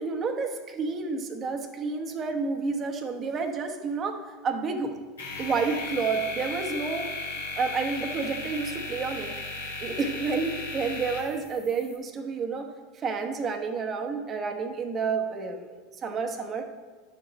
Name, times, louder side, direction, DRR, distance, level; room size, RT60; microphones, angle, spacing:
voice 1, 0.0-5.0 5.4-7.1 7.6-12.7 12.9-15.8 16.0-16.7, right 4 dB, 35° right, 4 dB, 1.1 m, -30 dB
sound 1, 5.2-12.0, left 3 dB, 85° left, 2.4 m, -36 dB
11.5 x 7.5 x 3.2 m, 1.4 s
hypercardioid pair, 85°, 0 cm